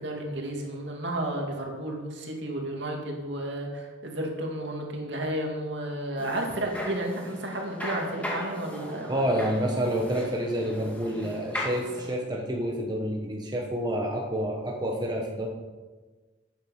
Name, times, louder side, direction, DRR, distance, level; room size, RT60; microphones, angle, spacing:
voice 1, 0.0-9.4, right 1 dB, 65° right, 1 dB, 2.5 m, -32 dB
sound 1, 6.2-12.2, left 1 dB, 10° left, 2.0 m, -38 dB
voice 2, 9.1-15.5, equal, 20° right, 0 dB, 1.2 m, -28 dB
12.5 x 9.2 x 5.6 m, 1.3 s
head